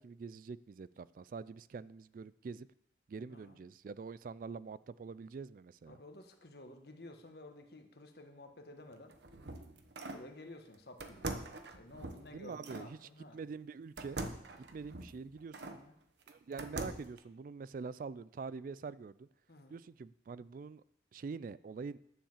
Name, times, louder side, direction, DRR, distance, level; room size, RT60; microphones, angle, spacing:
voice 1, 0.0-2.7 3.1-6.0 12.3-14.2 14.6-15.8 16.3-19.3 19.7-20.8 21.1-22.0, right 5 dB, 50° right, 18 dB, 0.3 m, -45 dB
voice 2, 5.9-9.1 10.1-13.4 15.7-15.9 19.5-19.8, left 2 dB, 60° left, 5 dB, 1.5 m, -53 dB
sound 1, 8.9-10.3 11.0-12.9 14.0-15.8 16.3-17.2, right 2 dB, 75° right, 1.0 m, -43 dB
10.0 x 7.2 x 7.3 m, 0.74 s
head